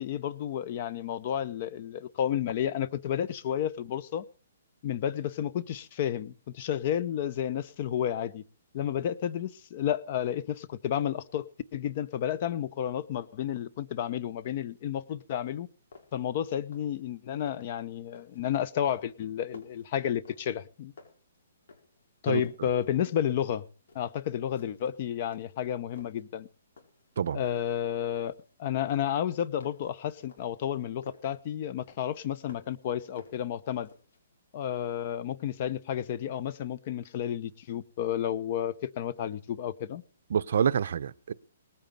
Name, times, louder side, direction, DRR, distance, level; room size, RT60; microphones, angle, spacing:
voice 1, 0.0-4.2 4.8-8.4 8.7-15.7 16.1-20.9 22.2-23.6 23.9-26.5 27.3-28.3 28.6-33.9 34.5-40.0, left 10 dB, 35° left, 0.7 m, -31 dB
sound 1, 15.5-15.6 15.9-16.3 16.6-17.0 17.3-17.8 18.1-18.5 18.8-20.7 21.0-22.0 22.3-23.5 23.9-24.2 24.6-25.0 25.3-26.3 26.8-27.1 27.4-28.5 28.9-31.4 31.8-32.8 33.1-34.2, left 3 dB, 65° left, 5.2 m, -53 dB
voice 2, 40.3-41.3, right 7 dB, 55° right, 0.7 m, -27 dB
19.0 x 9.2 x 6.9 m
hypercardioid pair, 170°, 0 cm